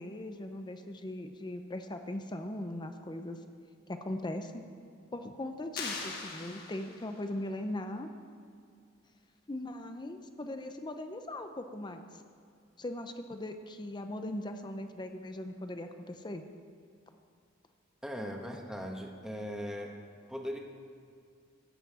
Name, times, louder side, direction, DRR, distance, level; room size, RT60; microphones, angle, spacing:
voice 1, 0.0-3.4 3.9-4.6 5.1-8.1 9.5-12.0 12.8-16.4, left 1 dB, 25° left, 7 dB, 0.7 m, -39 dB
sound 1, 5.8-7.3, left 4 dB, 55° left, 1.6 m, -40 dB
voice 2, 18.0-19.9 20.3-20.6, equal, 5° right, 1 dB, 1.2 m, -39 dB
13.0 x 5.8 x 8.5 m, 2.4 s
head